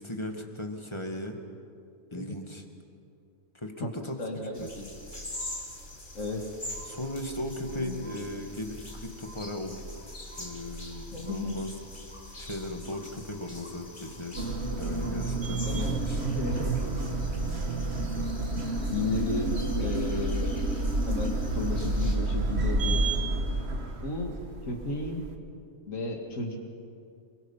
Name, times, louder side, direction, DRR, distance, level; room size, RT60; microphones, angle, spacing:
voice 1, 0.0-1.4 2.1-2.6 3.5-4.2 4.6-4.7 6.9-9.8 10.3-11.8 12.4-14.4 14.8-16.2, left 1 dB, 20° left, 3 dB, 2.1 m, -37 dB
voice 2, 4.2-4.9 6.1-6.4 7.7-8.1 11.1-11.6 15.6-16.8 18.9-20.5 21.0-23.0 23.9-24.4 24.7-25.2 25.9-26.6, left 2 dB, 85° left, 2 dB, 2.6 m, -33 dB
sound 1, 4.5-22.2, left 1 dB, 40° left, 2.9 m, -43 dB
sound 2, 14.4-25.3, right 2 dB, 55° right, 1.6 m, -30 dB
28.5 x 22.0 x 5.8 m, 2.4 s
omnidirectional pair, 1.3 m